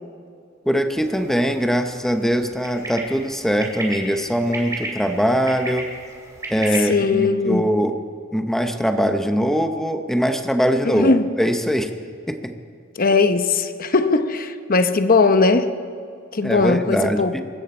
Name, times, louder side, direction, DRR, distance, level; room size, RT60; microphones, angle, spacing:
voice 1, 0.7-5.9 6.5-8.0 8.3-11.1 11.4-11.9 12.3-12.5 16.4-17.4, equal, ahead, 7 dB, 0.8 m, -21 dB
sound 1, 1.0-6.9, right 2 dB, 15° right, 2.8 m, -34 dB
voice 2, 6.8-7.7 10.8-11.3 13.0-15.7 16.3-17.3, left 3 dB, 45° left, 9 dB, 0.8 m, -19 dB
23.5 x 14.0 x 4.4 m, 2.4 s
head